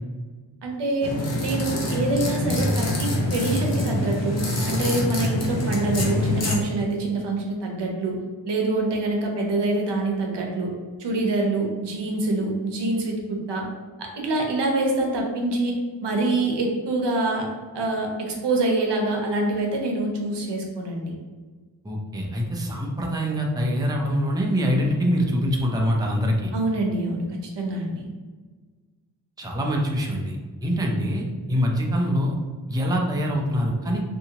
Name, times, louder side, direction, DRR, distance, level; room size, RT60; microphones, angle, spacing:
voice 1, 0.6-4.4 4.7-8.2 8.4-10.7 11.0-13.7 14.0-15.7 16.0-17.5 17.7-21.1 26.5-27.3 27.6-28.1, right 2 dB, 80° right, 0 dB, 0.7 m, -25 dB
sound 1, 1.0-6.6, left 1 dB, 40° left, 0.7 m, -25 dB
voice 2, 21.8-26.5 29.4-30.4 30.6-32.3 32.7-34.0, equal, 10° right, -1 dB, 0.5 m, -24 dB
2.8 x 2.6 x 2.8 m, 1.4 s
cardioid pair, 65°, 41 cm